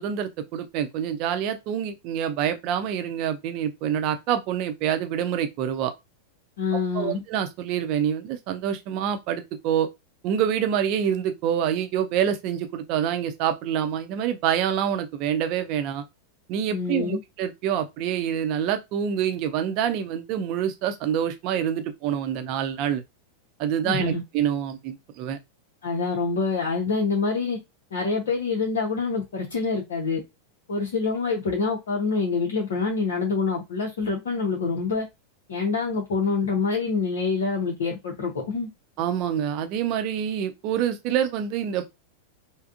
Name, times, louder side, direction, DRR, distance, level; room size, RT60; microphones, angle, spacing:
voice 1, 0.0-5.9 6.9-9.9 10.2-16.0 16.5-23.0 23.6-25.4 39.0-41.9, right 9 dB, 40° right, 0.5 m, -26 dB
voice 2, 6.6-7.2 16.7-17.2 23.8-24.2 25.8-27.6 27.9-30.2 30.7-35.1 35.5-38.7, left 4 dB, 60° left, 0.7 m, -26 dB
3.4 x 2.1 x 2.5 m
figure-of-eight pair, 90°, 0 cm